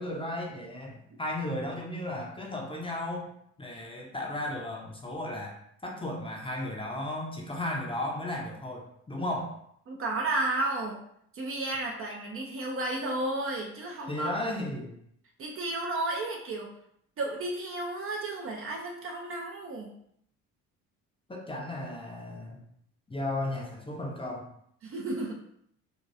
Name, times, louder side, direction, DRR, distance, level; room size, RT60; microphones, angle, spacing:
voice 1, 0.0-3.3 3.6-5.6 5.8-9.6 14.1-14.9 21.3-22.7 23.1-24.5, left 1 dB, 15° left, -1 dB, 0.6 m, -35 dB
voice 2, 9.9-11.0 11.3-14.4 15.4-16.7 17.2-19.9 24.8-25.4, right 2 dB, 35° right, 0 dB, 0.5 m, -32 dB
2.9 x 2.6 x 2.5 m, 0.70 s
figure-of-eight pair, 50°, 42 cm